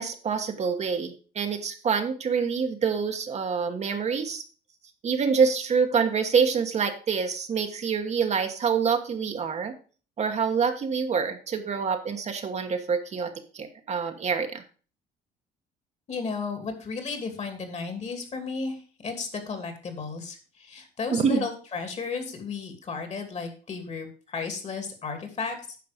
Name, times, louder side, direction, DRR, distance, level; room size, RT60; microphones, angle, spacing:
voice 1, 0.0-4.4 5.0-9.7 10.2-14.6 21.1-21.4, right 6 dB, 40° right, 5 dB, 1.3 m, -26 dB
voice 2, 16.1-25.6, left 4 dB, 40° left, 6 dB, 2.6 m, -34 dB
9.5 x 5.8 x 5.1 m, 0.38 s
cardioid pair, 110°, 17 cm